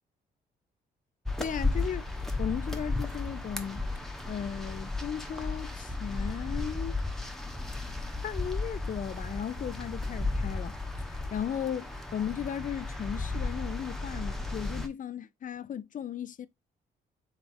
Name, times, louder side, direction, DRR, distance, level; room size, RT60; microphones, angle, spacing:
sound 1, 1.3-14.9, left 2 dB, ahead, 0.9 m, -34 dB
voice 1, 1.4-3.8 4.3-7.0 8.2-10.8 11.1-16.5, left 8 dB, 40° left, 0.4 m, -36 dB
3.5 x 3.2 x 4.3 m
hypercardioid pair, 50°, 21 cm